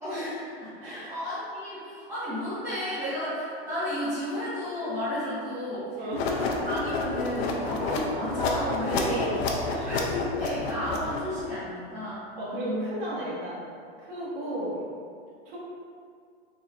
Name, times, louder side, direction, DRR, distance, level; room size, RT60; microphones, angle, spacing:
voice 1, 0.0-9.3 9.8-12.9, left 1 dB, 10° right, -15 dB, 1.2 m, -33 dB
sound 1, 6.1-11.4, left 3 dB, 70° left, 0.6 m, -30 dB
voice 2, 9.0-9.4 9.7-9.9 12.4-13.6 14.0-14.9 15.4-15.6, right 1 dB, 60° right, -8 dB, 1.5 m, -34 dB
4.0 x 3.2 x 2.4 m, 2.3 s
hypercardioid pair, 140°, 32 cm